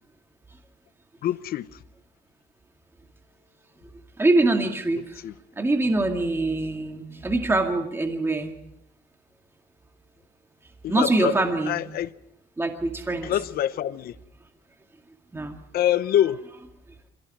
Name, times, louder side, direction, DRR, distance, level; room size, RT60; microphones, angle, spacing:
voice 1, 1.2-1.7 5.2-5.3 10.8-11.4 11.7-12.1 13.2-14.1 15.7-16.4, left 11 dB, 65° left, 0.9 m, -25 dB
voice 2, 4.2-5.2 5.6-8.5 10.9-11.8 12.6-13.3 15.3-15.5, right 2 dB, 15° right, 2.2 m, -24 dB
26.0 x 17.5 x 6.2 m
cardioid pair, 110°, 17 cm